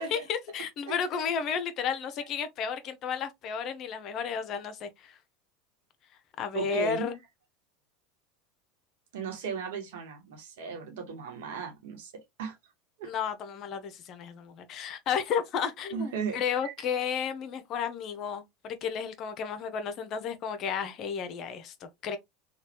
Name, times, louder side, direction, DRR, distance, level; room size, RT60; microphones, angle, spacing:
voice 1, 0.0-5.2 6.4-7.2 13.0-22.2, left 7 dB, 45° left, 0.7 m, -33 dB
voice 2, 6.5-7.1 9.1-12.6 13.0-13.1 15.9-16.7, right 6 dB, 70° right, 1.2 m, -36 dB
3.1 x 2.3 x 2.9 m
hypercardioid pair, 85°, 0 cm